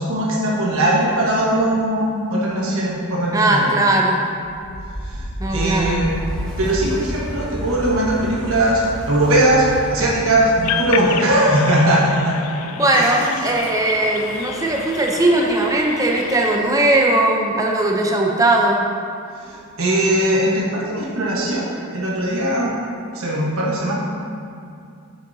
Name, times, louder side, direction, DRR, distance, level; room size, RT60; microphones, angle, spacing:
voice 1, 0.0-3.8 5.0-5.3 5.5-6.2 6.6-12.3 12.9-13.4 19.4-22.7 23.1-24.0, right 1 dB, 70° right, -5 dB, 1.2 m, -19 dB
voice 2, 3.3-4.2 5.4-6.1 12.8-18.8, right 2 dB, 15° right, 0 dB, 0.6 m, -18 dB
Wind, 4.4-17.3, equal, 5° left, 1.2 m, -33 dB
sound 1, 10.6-16.6, left 8 dB, 80° left, 0.3 m, -31 dB
8.4 x 6.5 x 2.7 m, 2.4 s
head